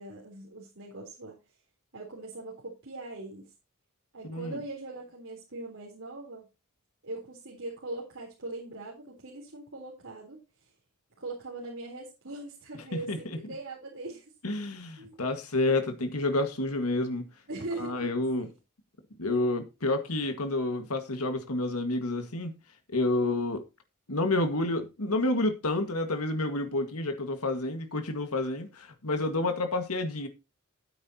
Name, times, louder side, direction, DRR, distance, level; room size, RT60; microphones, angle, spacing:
voice 1, 0.0-1.4 1.9-3.5 4.1-6.5 7.0-10.4 11.2-14.3 15.0-15.1 17.5-18.1 18.4-18.5 29.3-29.7, right 2 dB, 60° right, 3.9 m, -41 dB
voice 2, 4.2-4.6 12.9-13.2 14.4-17.3 17.8-18.5 19.2-22.5 22.9-23.6 24.1-30.3, left 2 dB, 90° left, 1.8 m, -29 dB
14.5 x 8.9 x 2.9 m
head